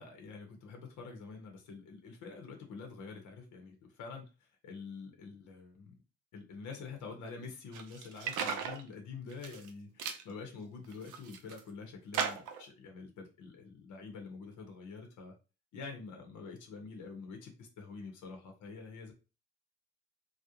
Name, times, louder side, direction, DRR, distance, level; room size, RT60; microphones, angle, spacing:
voice 1, 0.0-6.0 6.3-15.3 15.7-19.1, left 4 dB, 80° left, 3 dB, 0.7 m, -47 dB
sound 1, 7.7-8.8 9.3-9.7 10.0-10.2 10.8-11.6 12.1-12.6, right 7 dB, 85° right, 0.5 m, -36 dB
2.4 x 2.0 x 2.7 m, 0.32 s
cardioid pair, 90°, 30 cm